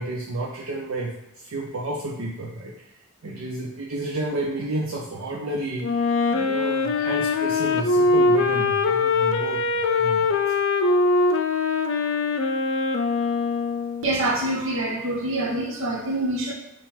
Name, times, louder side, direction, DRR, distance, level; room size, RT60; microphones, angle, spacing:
voice 1, 0.0-6.0 6.3-10.6, right 1 dB, 85° right, -4 dB, 0.6 m, -31 dB
Wind instrument woodwind instrument, 5.8-14.2, left 3 dB, 65° left, 0.4 m, -22 dB
voice 2, 14.0-16.5, right 1 dB, 65° right, -1 dB, 0.9 m, -25 dB
3.7 x 2.4 x 4.3 m, 0.89 s
head